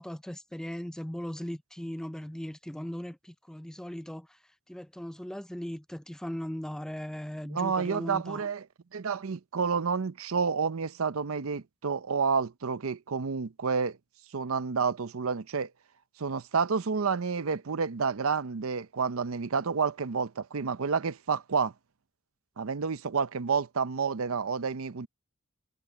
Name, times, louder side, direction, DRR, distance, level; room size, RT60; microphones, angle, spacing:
voice 1, 0.0-4.4 4.7-8.5, equal, 5° left, 0.4 m, -38 dB
voice 2, 7.5-8.6 8.9-14.0 14.3-15.7 16.2-21.7 22.6-25.1, right 5 dB, 75° right, 0.6 m, -29 dB
head